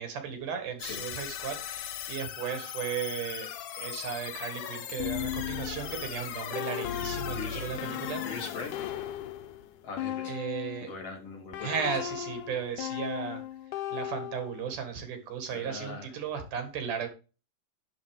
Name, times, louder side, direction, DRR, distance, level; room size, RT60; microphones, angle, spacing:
voice 1, 0.0-8.2 10.2-10.9 11.6-13.4 13.9-17.1, right 7 dB, 80° right, 6 dB, 3.4 m, -35 dB
sound 1, 0.8-10.0, left 11 dB, 70° left, 1.8 m, -40 dB
sound 2, 5.0-10.9 11.5-14.7, left 11 dB, 90° left, 2.4 m, -37 dB
voice 2, 7.3-7.6 8.2-9.1 9.8-10.4 10.8-11.7 15.5-16.1, left 4 dB, 55° left, 2 dB, 3.0 m, -40 dB
11.0 x 4.2 x 4.9 m, 0.31 s
omnidirectional pair, 3.6 m